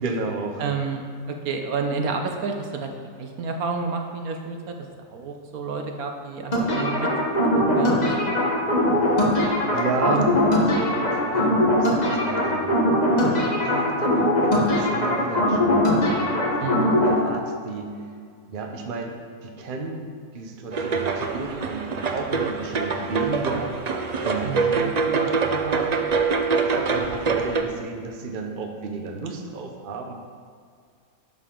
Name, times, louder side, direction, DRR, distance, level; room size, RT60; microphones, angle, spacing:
voice 1, 0.0-0.7 9.0-9.2 9.7-12.7 13.3-17.9 18.5-20.0 20.3-23.7 24.2-25.9 26.6-30.1, right 3 dB, 40° right, 2 dB, 0.9 m, -32 dB
voice 2, 0.6-2.9 3.2-4.7 5.1-7.1 7.5-8.3 16.6-17.0 24.4-24.7, right 4 dB, 70° right, 3 dB, 1.3 m, -30 dB
sound 1, 6.5-17.2, left 1 dB, 30° left, 1.2 m, -21 dB
sound 2, 20.7-27.6, right 4 dB, 85° right, 0.3 m, -25 dB
11.0 x 6.4 x 3.8 m, 2.2 s
omnidirectional pair, 1.6 m